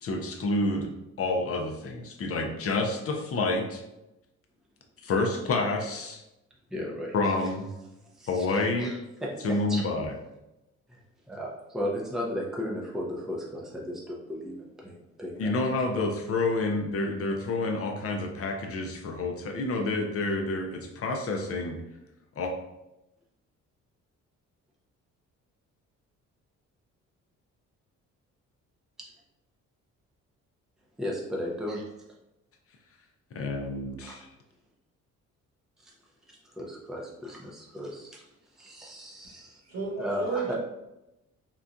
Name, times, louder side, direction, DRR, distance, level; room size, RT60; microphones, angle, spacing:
voice 1, 0.0-0.9 1.2-3.8 5.0-6.2 7.1-7.7 8.3-8.9 9.4-10.1 15.4-21.8 22.4-22.5 33.3-34.3, left 2 dB, 50° left, 2 dB, 0.6 m, -29 dB
voice 2, 6.7-7.5 8.1-9.8 10.9-11.0 11.3-16.4 31.0-31.9 34.0-34.2 35.8-35.9 36.3-38.2 38.5-39.6 40.0-40.5, equal, ahead, -3 dB, 0.6 m, -36 dB
voice 3, 39.7-40.5, right 4 dB, 60° right, -3 dB, 1.3 m, -33 dB
3.9 x 2.2 x 2.5 m, 0.93 s
cardioid pair, 90°, 30 cm